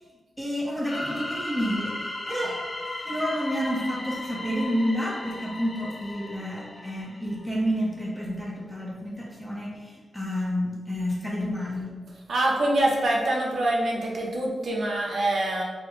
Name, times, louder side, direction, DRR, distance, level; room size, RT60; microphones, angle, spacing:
voice 1, 0.4-2.6 3.1-11.9, equal, ahead, -4 dB, 0.9 m, -29 dB
sound 1, 0.8-7.5, left 2 dB, 35° left, 0.5 m, -36 dB
voice 2, 12.3-15.6, right 1 dB, 75° right, -2 dB, 0.6 m, -25 dB
3.3 x 2.3 x 3.1 m, 1.4 s
cardioid pair, 65°, 0 cm